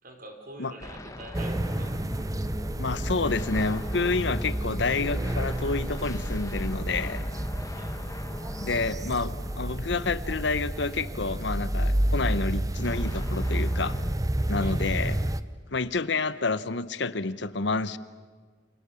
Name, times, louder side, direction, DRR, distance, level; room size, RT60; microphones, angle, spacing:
voice 1, 0.0-2.0 7.7-8.0 14.6-15.0, right 1 dB, 45° right, 4 dB, 4.2 m, -45 dB
sound 1, 0.8-11.1 12.8-14.1, left 1 dB, 15° left, 1.5 m, -39 dB
sound 2, 1.3-15.4, right 1 dB, 20° right, 0.8 m, -30 dB
voice 2, 2.8-7.2 8.6-14.0 14.5-15.2 15.7-18.0, left 3 dB, 65° left, 15 dB, 0.9 m, -29 dB
29.5 x 27.0 x 7.1 m, 1.5 s
head